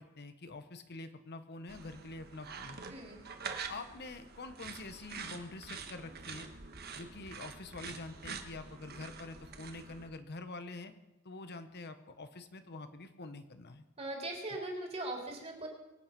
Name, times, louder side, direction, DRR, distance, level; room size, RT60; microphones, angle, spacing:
voice 1, 0.0-2.8 3.5-6.5 6.9-10.9 11.2-13.8, left 3 dB, 50° left, 9 dB, 0.9 m, -46 dB
sound 1, 1.7-10.1, right 5 dB, 45° right, 1.3 m, -46 dB
voice 2, 14.0-15.7, right 1 dB, 30° right, 0 dB, 3.4 m, -40 dB
23.0 x 8.7 x 5.9 m, 0.99 s
head